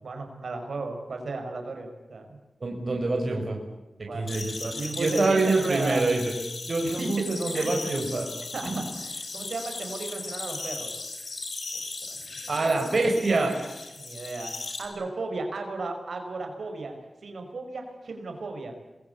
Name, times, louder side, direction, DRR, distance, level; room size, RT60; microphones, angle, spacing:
voice 1, 0.0-2.4 4.1-4.3 4.7-6.0 6.8-7.8 8.5-10.9 12.1-12.7 14.0-16.9 17.2-18.7, right 3 dB, 70° right, 4 dB, 6.2 m, -35 dB
voice 2, 2.6-3.6 4.0-6.3 6.7-8.3 8.7-8.8 12.5-13.5, right 2 dB, 50° right, 2 dB, 5.3 m, -26 dB
sound 1, 4.3-14.8, left 3 dB, 60° left, 5.9 m, -37 dB
26.5 x 22.0 x 8.4 m, 1.1 s
wide cardioid pair, 70°, 0 cm